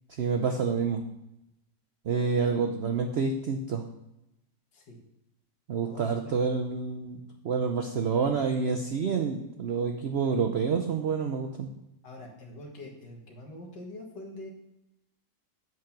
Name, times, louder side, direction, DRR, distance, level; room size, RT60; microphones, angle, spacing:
voice 1, 0.2-1.0 2.0-3.8 5.7-7.2 7.4-11.7, right 5 dB, 75° right, 4 dB, 0.5 m, -28 dB
voice 2, 5.8-6.3 12.0-14.5, left 1 dB, 80° left, 1 dB, 2.2 m, -44 dB
7.7 x 4.7 x 5.8 m, 0.90 s
omnidirectional pair, 1.8 m